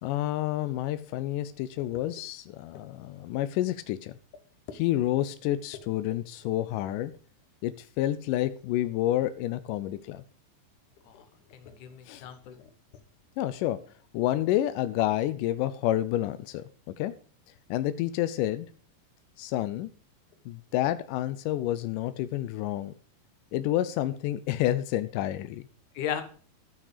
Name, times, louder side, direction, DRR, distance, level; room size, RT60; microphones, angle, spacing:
voice 1, 0.0-4.1 4.7-7.1 7.6-10.2 12.1-12.2 13.4-13.8 14.1-16.7 17.0-17.1 17.7-18.7 19.4-19.9 20.5-22.9 23.5-25.7, left 14 dB, 85° left, 1.9 m, -29 dB
voice 2, 11.5-12.6 25.9-26.2, left 10 dB, 65° left, 2.4 m, -36 dB
13.0 x 6.1 x 4.9 m
omnidirectional pair, 4.3 m